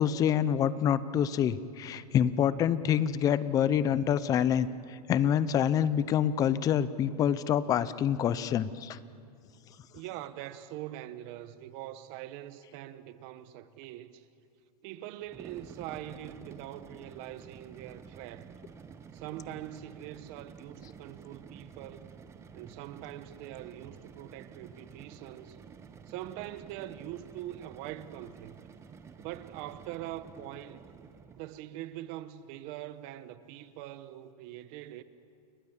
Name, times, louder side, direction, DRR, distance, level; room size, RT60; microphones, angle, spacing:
voice 1, 0.0-9.0, left 9 dB, 15° left, 0.6 m, -27 dB
voice 2, 9.9-14.2 14.8-18.5 19.1-22.1 22.5-25.6 26.1-28.6 29.2-30.9 31.4-35.0, right 13 dB, 35° right, 1.0 m, -43 dB
sound 1, 15.2-31.6, right 6 dB, 15° right, 0.9 m, -51 dB
29.5 x 23.0 x 7.3 m
supercardioid pair, 160°, 21 cm